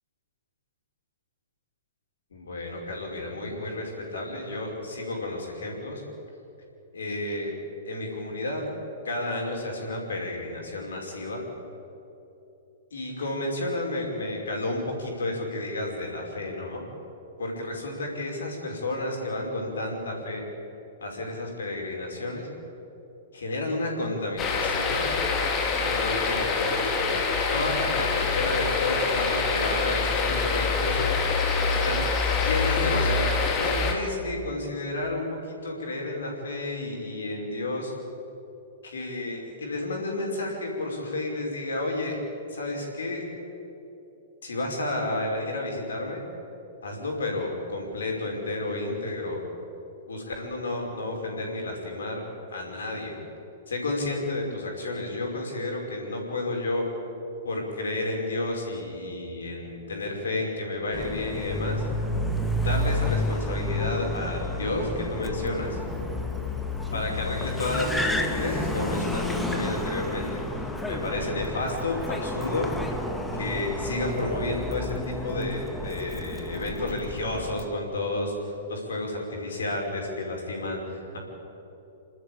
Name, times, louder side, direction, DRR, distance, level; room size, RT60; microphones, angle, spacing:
voice 1, 2.3-6.0 6.9-7.5 7.9-8.7 9.0-11.5 12.9-16.9 17.4-20.4 21.0-22.5 23.3-25.1 25.8-27.2 27.5-31.1 31.8-32.0 32.4-35.3 35.6-37.9 38.8-42.2 42.5-43.2 44.4-46.2 46.8-49.4 50.1-52.2 52.5-53.1 53.7-56.9 57.4-61.8 62.6-65.8 66.9-72.7 73.3-81.2, left 2 dB, 65° left, 0 dB, 5.4 m, -31 dB
sound 1, 24.4-33.9, left 4 dB, 25° left, 2.8 m, -25 dB
Car, 60.9-77.7, left 1 dB, 5° left, 1.7 m, -31 dB
28.5 x 12.5 x 8.7 m, 3.0 s
figure-of-eight pair, 105°, 0 cm